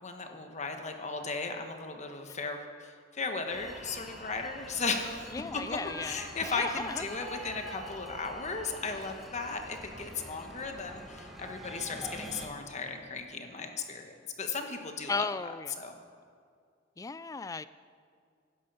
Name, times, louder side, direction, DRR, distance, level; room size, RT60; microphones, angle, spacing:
voice 1, 0.0-15.3 15.8-16.0, left 4 dB, 40° left, 5 dB, 1.3 m, -36 dB
sound 1, 3.5-12.5, equal, ahead, 1.7 m, -45 dB
voice 2, 5.3-7.0 15.1-15.8 17.0-17.7, left 4 dB, 20° left, 15 dB, 0.4 m, -36 dB
16.5 x 12.0 x 5.5 m, 2.2 s
head